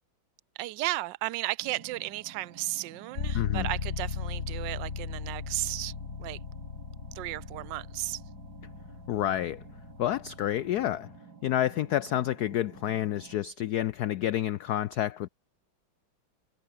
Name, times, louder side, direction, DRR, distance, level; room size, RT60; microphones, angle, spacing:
voice 1, 0.5-5.9 6.2-6.4 7.1-8.2, right 18 dB, 70° right, 1.2 m, -34 dB
sound 1, 1.6-13.4, right 5 dB, 50° right, 3.1 m, -51 dB
sound 2, 3.1-10.9, left 5 dB, 40° left, 2.0 m, -37 dB
voice 2, 3.3-3.7 9.1-9.6 10.0-11.1 11.4-15.3, left 12 dB, 80° left, 0.8 m, -29 dB
omnidirectional pair, 2.3 m